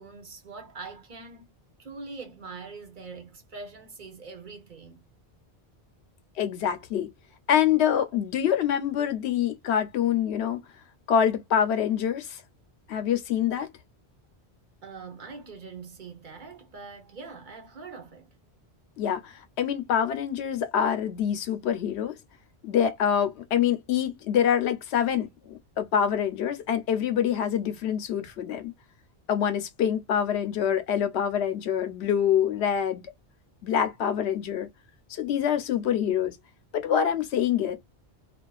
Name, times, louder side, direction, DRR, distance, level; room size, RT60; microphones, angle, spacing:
voice 1, 0.0-1.5 1.8-5.1 14.8-18.3, right 4 dB, 50° right, 0.9 m, -43 dB
voice 2, 6.4-7.1 7.5-10.6 11.1-12.4 12.9-13.7 19.0-22.1 22.6-28.7 29.3-33.0 33.6-34.7 35.1-36.4 36.7-37.8, left 9 dB, 85° left, 0.9 m, -25 dB
2.3 x 2.3 x 2.3 m
omnidirectional pair, 1.1 m